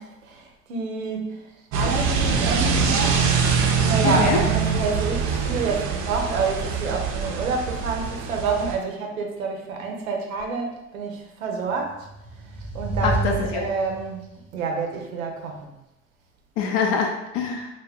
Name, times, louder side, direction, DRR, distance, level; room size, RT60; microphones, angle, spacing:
voice 1, 0.0-3.3 3.8-12.1 12.7-14.3 14.5-15.7, right 4 dB, 90° right, 1 dB, 0.6 m, -28 dB
sound 1, 1.7-8.8, right 5 dB, 45° right, 0.5 m, -23 dB
voice 2, 4.0-4.4 13.0-13.6 16.6-17.7, left 5 dB, 55° left, 2 dB, 0.5 m, -24 dB
sound 2, 11.9-14.3, right 2 dB, 5° right, 0.9 m, -29 dB
2.3 x 2.1 x 3.4 m, 0.92 s
hypercardioid pair, 75°, 40 cm